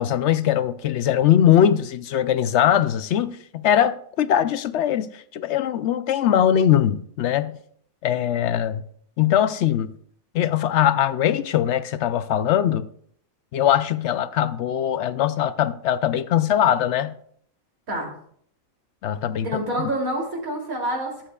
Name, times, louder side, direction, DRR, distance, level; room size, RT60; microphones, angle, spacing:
voice 1, 0.0-5.1 5.3-7.6 8.0-8.8 9.2-9.9 10.3-12.8 13.5-17.1 19.0-19.5 19.8-19.9, left 10 dB, 65° left, 0.8 m, -21 dB
voice 2, 19.4-21.3, right 1 dB, 85° right, 3.4 m, -27 dB
21.5 x 7.4 x 2.3 m
omnidirectional pair, 1.4 m